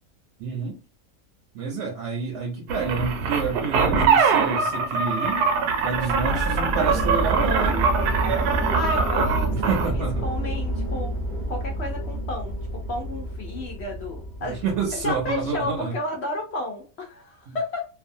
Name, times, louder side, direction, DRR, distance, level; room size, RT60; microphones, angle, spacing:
voice 1, 0.4-0.8 1.5-5.5 5.8-7.9 9.5-10.3 14.4-15.9 17.5-17.6, right 5 dB, 65° right, 0.8 m, -28 dB
sound 1, 2.7-9.9, right 5 dB, 85° right, 1.2 m, -23 dB
sound 2, 5.9-15.8, right 1 dB, 30° right, 0.6 m, -29 dB
voice 2, 8.5-11.1 11.5-12.6 12.9-14.6 14.9-17.9, left 2 dB, 70° left, 0.6 m, -32 dB
2.6 x 2.3 x 2.5 m
omnidirectional pair, 1.6 m